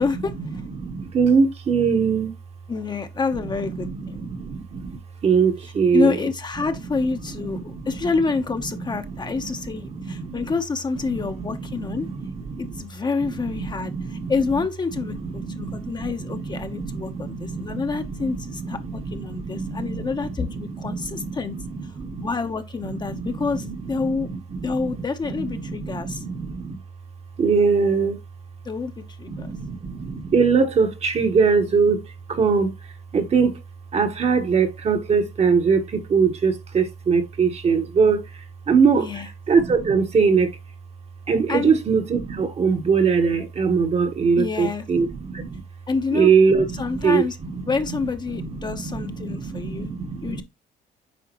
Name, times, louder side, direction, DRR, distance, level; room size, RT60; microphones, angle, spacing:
voice 1, 0.0-0.6 2.7-4.3 5.9-12.1 12.6-21.6 22.2-24.3 24.6-26.2 28.6-28.9 29.2-29.5 38.9-39.3 41.5-41.7 44.4-44.9 45.9-46.3 46.7-47.4 47.7-49.9 50.2-50.4, left 4 dB, 25° left, 0.9 m, -27 dB
voice 2, 0.8-2.3 3.8-6.1 7.5-7.8 10.1-10.4 11.2-11.3 11.8-12.8 13.6-14.3 15.4-17.8 18.2-20.1 20.6-22.3 22.9-23.4 24.3-24.7 25.2-26.8 27.4-28.2 29.3-32.0 32.3-32.7 33.1-33.6 33.9-38.2 38.7-39.1 39.5-40.5 41.3-45.6 46.1-47.5 48.3-50.4, right 5 dB, 40° right, 1.2 m, -22 dB
8.5 x 5.0 x 3.0 m
cardioid pair, 110°, 17 cm